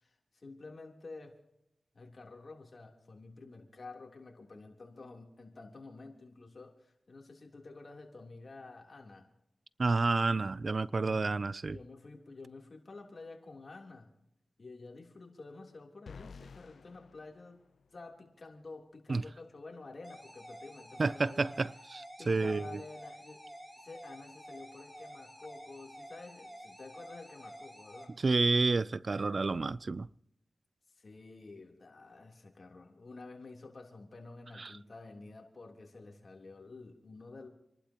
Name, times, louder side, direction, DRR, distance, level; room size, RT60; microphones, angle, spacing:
voice 1, 0.0-1.4 1.9-9.3 11.0-11.2 11.7-14.1 14.6-17.6 17.9-21.6 22.2-23.4 23.8-28.2 30.9-37.5, left 3 dB, 55° left, 3.4 m, -50 dB
voice 2, 9.8-11.8 19.1-19.2 21.0-22.8 28.2-30.1 34.6-34.7, right 3 dB, 55° right, 0.5 m, -30 dB
sound 1, 16.1-18.2, left 5 dB, 80° left, 0.5 m, -52 dB
sound 2, 20.0-28.0, equal, 10° right, 5.3 m, -50 dB
29.5 x 11.5 x 3.0 m
cardioid pair, 45°, 0 cm